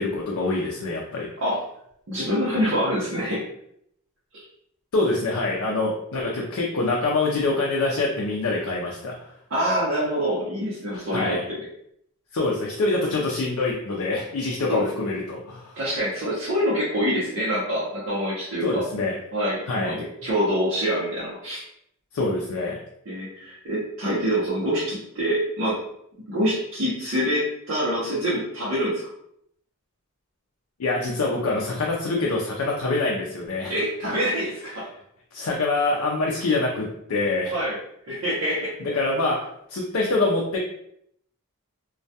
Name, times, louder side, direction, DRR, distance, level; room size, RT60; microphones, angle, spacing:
voice 1, 0.0-1.3 4.9-9.3 10.9-11.4 12.3-15.8 18.6-19.1 19.7-20.0 22.1-22.8 30.8-33.7 35.3-37.5 38.8-40.6, left 2 dB, 75° left, -2 dB, 0.4 m, -25 dB
voice 2, 2.1-3.4 4.3-4.4 9.5-11.6 14.7-14.9 15.8-18.9 19.3-21.6 23.1-25.8 26.3-29.0 33.7-34.9 37.5-37.8 38.1-38.8, equal, 60° right, -8 dB, 0.6 m, -25 dB
2.2 x 2.1 x 2.7 m, 0.73 s
head